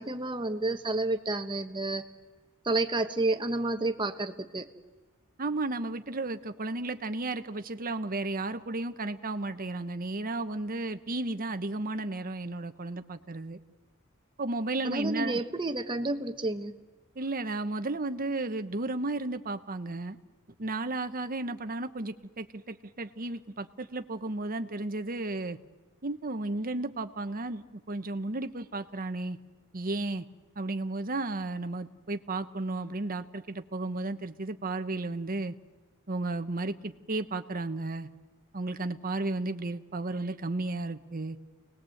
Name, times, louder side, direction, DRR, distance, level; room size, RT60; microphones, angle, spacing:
voice 1, 0.0-2.0 2.6-4.7 14.8-16.7, right 2 dB, 25° right, 7 dB, 1.3 m, -30 dB
voice 2, 5.4-13.6 14.4-15.4 17.2-20.2 20.6-25.6 26.0-29.4 29.7-30.2 30.6-35.5 36.1-38.1 38.5-41.4, right 2 dB, 40° right, 9 dB, 1.0 m, -33 dB
30.0 x 20.0 x 7.9 m, 1.2 s
head